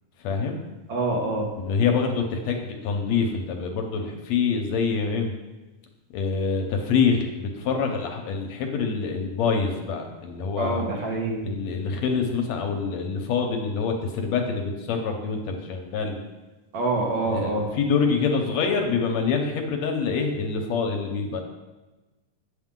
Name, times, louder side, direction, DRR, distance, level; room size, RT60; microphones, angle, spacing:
voice 1, 0.2-0.6 1.6-5.3 6.1-10.9 11.4-16.2 17.2-21.4, left 5 dB, 70° left, 3 dB, 2.0 m, -26 dB
voice 2, 0.9-1.5 10.6-11.4 16.7-17.7, right 2 dB, 60° right, -1 dB, 2.0 m, -26 dB
8.3 x 7.8 x 3.7 m, 1.2 s
omnidirectional pair, 3.4 m